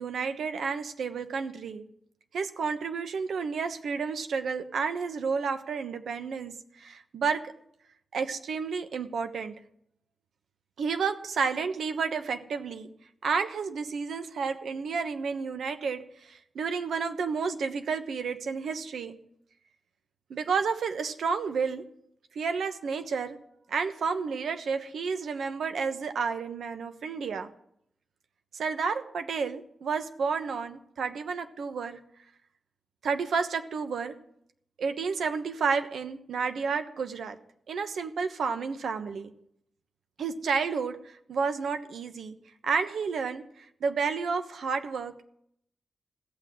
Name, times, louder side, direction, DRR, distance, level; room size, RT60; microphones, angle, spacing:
voice 1, 0.0-1.8 2.3-7.5 8.1-9.5 10.8-12.9 13.2-19.2 20.3-21.8 22.3-23.4 23.7-27.5 28.5-32.0 33.0-34.1 34.8-37.4 37.7-39.3 40.2-42.4 42.6-45.3, right 5 dB, 85° right, 8 dB, 1.1 m, -31 dB
16.5 x 6.3 x 9.3 m, 0.72 s
cardioid pair, 70°, 0 cm